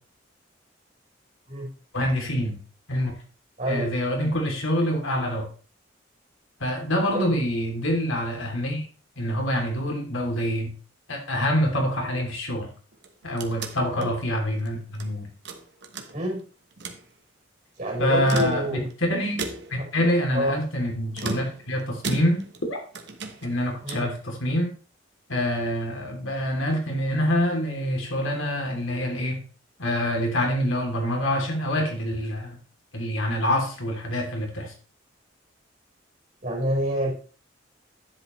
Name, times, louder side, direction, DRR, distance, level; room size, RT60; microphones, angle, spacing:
voice 1, 1.9-2.6 2.9-3.1 3.7-5.4 6.6-8.8 9.2-10.7 11.1-12.7 13.2-15.3 18.0-18.8 19.1-19.4 19.7-22.4 22.7-22.8 23.4-24.7 25.3-29.4 29.8-32.6 32.9-34.7, equal, 85° left, 1 dB, 3.0 m, -26 dB
voice 2, 3.6-3.9 7.1-7.3 14.0-14.1 16.1-16.4 17.8-18.9 19.8-19.9 20.3-20.6 23.8-24.1 36.4-37.1, equal, 40° right, -2 dB, 4.5 m, -27 dB
sound 1, 12.9-15.1 15.4-16.4 16.7-17.1 18.1-18.9 19.4-19.9 21.1-22.7 22.9-24.2, right 3 dB, 60° right, 1.2 m, -36 dB
10.5 x 7.8 x 3.2 m, 0.39 s
head